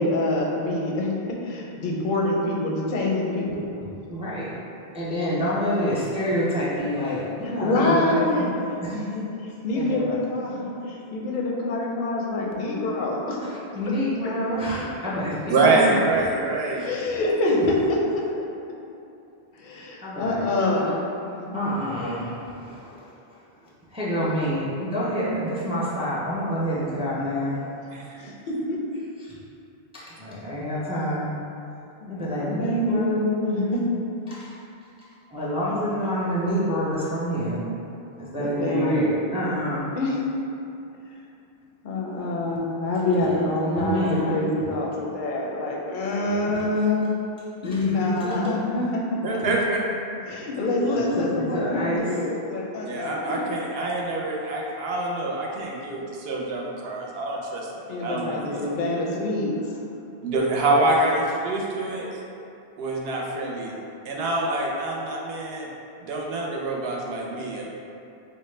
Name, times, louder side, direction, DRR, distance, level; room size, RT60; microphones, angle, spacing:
voice 1, 0.0-3.7 5.9-6.0 7.4-8.5 8.9-13.4 16.8-18.2 19.6-21.0 21.4-21.6 28.2-28.8 32.0-33.9 38.4-39.1 39.9-40.2 41.8-47.1 47.6-49.4 50.3-53.4 57.9-59.5, left 2 dB, 60° left, -2 dB, 0.6 m, -26 dB
voice 2, 4.1-4.5 4.9-8.4 8.8-8.9 9.7-10.2 13.4-16.0 16.8-16.9 20.0-20.9 21.5-23.1 23.9-27.6 29.2-29.3 29.9-31.3 32.1-33.2 34.3-34.5 35.3-37.6 38.2-39.9 43.0-43.3 43.6-44.4 46.5-46.6 47.6-48.6 50.3-50.4 50.8-52.2 61.8-61.9, equal, 10° right, -7 dB, 0.3 m, -28 dB
voice 3, 15.5-16.9 27.9-28.2 49.2-49.8 52.8-57.7 58.0-58.8 60.2-62.1 62.8-63.8 64.0-65.7 66.0-67.7, right 2 dB, 75° right, -2 dB, 0.8 m, -25 dB
4.4 x 2.1 x 3.2 m, 2.7 s
omnidirectional pair, 1.1 m